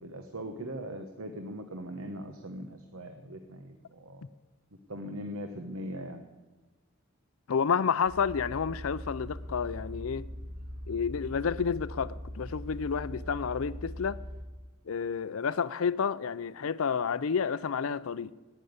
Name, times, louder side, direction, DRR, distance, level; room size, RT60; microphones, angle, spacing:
voice 1, 0.0-4.3 4.9-6.2, equal, 80° right, 1.2 m, -40 dB
voice 2, 7.5-10.3 10.9-14.2 14.9-18.3, left 6 dB, 75° left, 0.5 m, -30 dB
sound 1, 8.0-14.4, equal, 40° right, 3.1 m, -41 dB
12.0 x 10.0 x 9.5 m
head